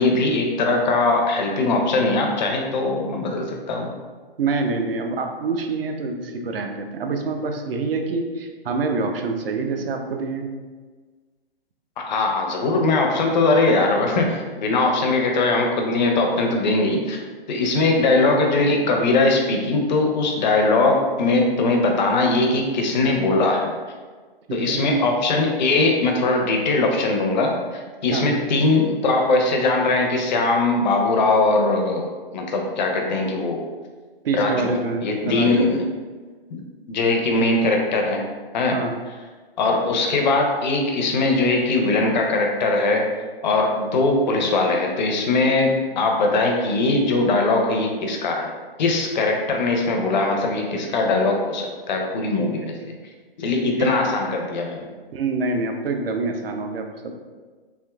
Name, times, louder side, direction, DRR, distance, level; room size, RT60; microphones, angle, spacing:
voice 1, 0.0-3.9 12.0-17.2 17.5-23.7 24.5-32.0 32.3-33.6 34.3-34.7 35.0-35.8 36.5-36.6 36.9-38.2 38.5-38.8 39.6-43.1 43.4-48.5 48.8-52.7 53.4-54.8, left 2 dB, 50° left, 1 dB, 0.6 m, -20 dB
voice 2, 4.4-10.5 24.5-24.9 28.1-28.4 34.2-35.6 38.7-38.9 52.4-52.5 53.8-53.9 55.1-57.1, right 3 dB, 75° right, 4 dB, 0.5 m, -26 dB
3.5 x 2.6 x 2.3 m, 1.4 s
hypercardioid pair, 130°, 30 cm